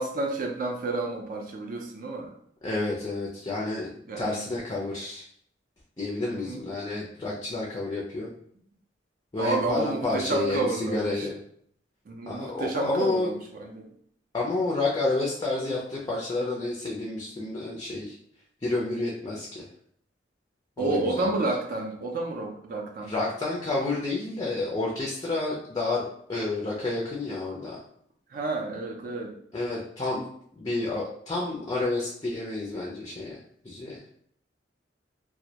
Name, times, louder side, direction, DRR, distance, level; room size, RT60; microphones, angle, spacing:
voice 1, 0.0-2.3 4.1-4.4 6.3-6.6 9.4-11.3 12.1-13.9 20.8-23.1 28.3-29.3, right 2 dB, 50° right, 1 dB, 0.4 m, -30 dB
voice 2, 2.6-5.3 6.0-8.3 9.3-11.4 12.3-13.3 14.3-18.2 18.6-19.7 20.8-21.4 23.1-27.8 29.5-30.3 30.6-33.4 33.6-34.0, left 2 dB, 20° left, -4 dB, 0.4 m, -30 dB
2.2 x 2.0 x 2.7 m, 0.65 s
head